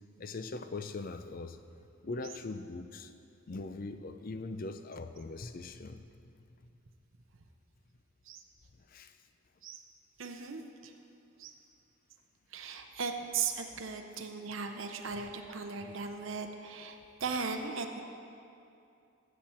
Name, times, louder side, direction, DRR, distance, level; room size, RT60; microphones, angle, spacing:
voice 1, 0.2-1.6 2.0-3.1 3.5-6.0 8.9-9.1, left 3 dB, 40° left, 9 dB, 0.5 m, -41 dB
voice 2, 10.2-10.9 11.4-11.5 12.5-18.0, right 5 dB, 65° right, 5 dB, 0.7 m, -37 dB
14.5 x 7.6 x 4.4 m, 2.6 s
head